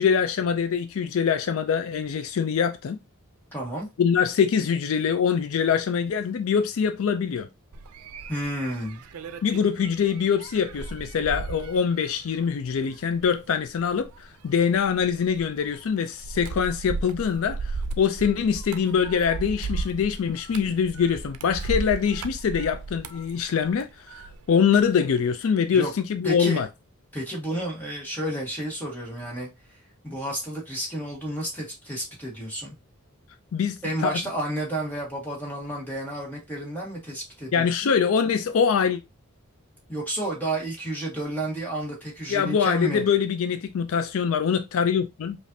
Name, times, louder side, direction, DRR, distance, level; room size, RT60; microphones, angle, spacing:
voice 1, 0.0-3.0 4.0-7.5 9.4-17.6 18.0-26.7 33.5-34.2 37.5-39.0 42.3-45.4, left 7 dB, 65° left, 0.4 m, -24 dB
voice 2, 3.5-3.9 8.3-9.0 25.7-25.9 26.2-26.6 27.1-29.5 30.0-32.8 33.8-37.9 39.9-43.0, right 1 dB, 10° left, 1.5 m, -31 dB
sound 1, 7.7-24.4 24.8-25.2, right 3 dB, 90° right, 0.5 m, -36 dB
Telephone, 17.3-17.5 18.2-18.4 19.0-19.2 19.7-19.9 20.3-20.5 20.9-21.2 21.6-21.7 22.1-22.2 22.5-22.7 23.1-23.2 23.5-23.7 24.1-24.3, right 4 dB, 60° right, 1.1 m, -49 dB
5.1 x 2.5 x 2.7 m
head